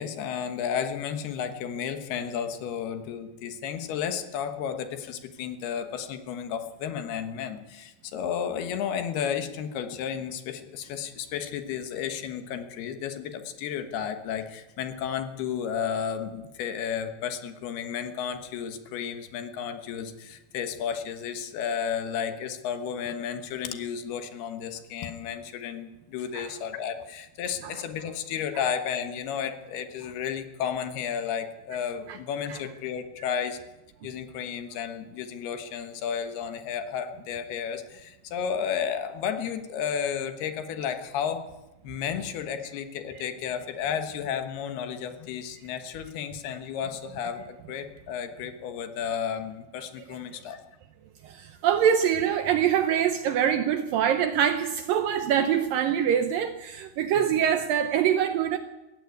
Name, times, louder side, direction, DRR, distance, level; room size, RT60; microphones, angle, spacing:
voice 1, 0.0-33.6 34.0-41.4 41.8-50.6 57.3-57.4, left 8 dB, 70° left, 8 dB, 3.1 m, -32 dB
voice 2, 51.2-58.6, right 9 dB, 75° right, 9 dB, 2.2 m, -24 dB
18.0 x 15.5 x 9.6 m, 1.0 s
omnidirectional pair, 4.9 m